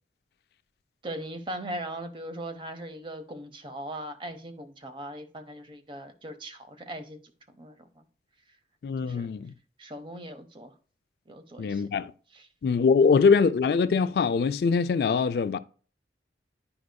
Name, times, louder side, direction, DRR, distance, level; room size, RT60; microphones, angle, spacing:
voice 1, 1.0-7.2 7.6-8.0 9.0-9.3 9.8-10.7 11.3-11.9 12.3-12.5 13.0-13.2, right 1 dB, 30° right, 0.7 m, -39 dB
voice 2, 8.8-9.5 11.6-12.1 12.6-15.6, left 5 dB, 60° left, 0.3 m, -23 dB
10.5 x 4.8 x 2.2 m
head